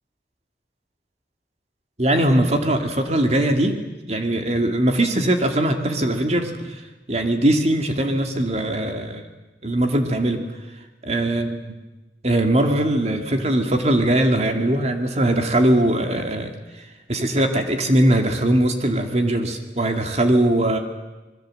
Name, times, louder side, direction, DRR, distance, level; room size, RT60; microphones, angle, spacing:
voice 1, 2.0-3.8 4.1-6.8 7.1-9.2 9.6-10.4 11.1-11.7 12.2-20.8, right 1 dB, 40° right, 5 dB, 2.3 m, -21 dB
26.5 x 21.5 x 7.7 m, 1.1 s
head